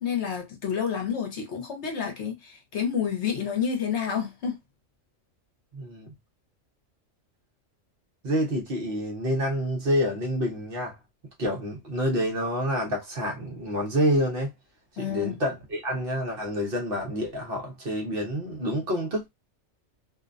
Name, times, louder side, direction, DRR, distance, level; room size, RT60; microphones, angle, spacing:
voice 1, 0.0-4.6 15.0-15.4, left 7 dB, 65° left, 1.0 m, -29 dB
voice 2, 5.7-6.1 8.2-11.0 11.4-14.5 15.0-19.2, equal, 50° right, 0.9 m, -28 dB
2.6 x 2.1 x 2.4 m
omnidirectional pair, 1.3 m